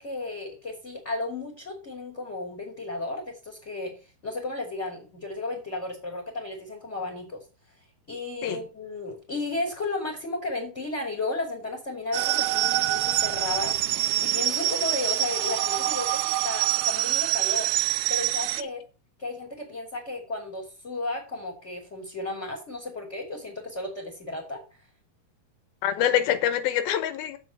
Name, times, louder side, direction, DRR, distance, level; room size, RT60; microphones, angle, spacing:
voice 1, 0.0-3.9 4.2-7.4 8.1-17.7 18.1-18.8 19.2-24.6, left 2 dB, 20° left, 1 dB, 2.6 m, -34 dB
sound 1, 12.1-18.6, right 16 dB, 90° right, 2.7 m, -25 dB
voice 2, 25.8-27.4, left 10 dB, 75° left, 12 dB, 2.6 m, -25 dB
7.5 x 6.3 x 7.7 m, 0.33 s
omnidirectional pair, 4.5 m